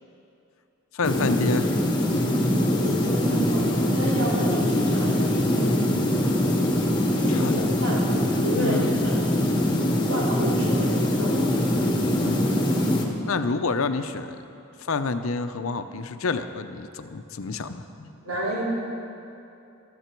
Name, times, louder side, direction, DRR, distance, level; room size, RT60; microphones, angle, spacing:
voice 1, 0.9-1.8 7.3-7.6 8.5-8.9 12.2-12.5 13.3-14.4 14.8-18.1, left 3 dB, 75° left, 10 dB, 0.6 m, -28 dB
sound 1, 1.0-13.1, left 1 dB, 20° left, 1.2 m, -23 dB
voice 2, 2.7-5.7 7.2-8.0 8.4-9.2 9.8-11.7 18.2-18.6, right 1 dB, 85° right, -5 dB, 3.5 m, -30 dB
15.0 x 13.0 x 4.5 m, 2.7 s
head